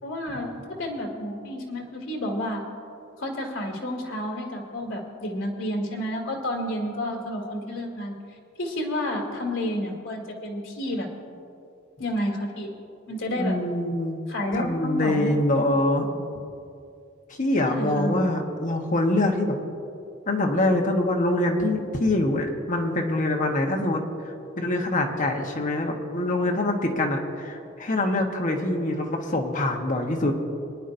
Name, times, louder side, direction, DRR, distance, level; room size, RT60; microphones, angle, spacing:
voice 1, 0.0-2.6 3.2-8.1 8.6-11.1 12.0-12.7 13.1-13.6 14.3-15.3 15.7-16.1 17.6-18.1, left 1 dB, 75° left, 0 dB, 2.2 m, -30 dB
voice 2, 13.4-14.2 14.5-16.0 17.4-19.5 20.3-30.4, left 1 dB, 40° left, 2 dB, 1.2 m, -24 dB
25.0 x 10.0 x 2.6 m, 2.6 s
head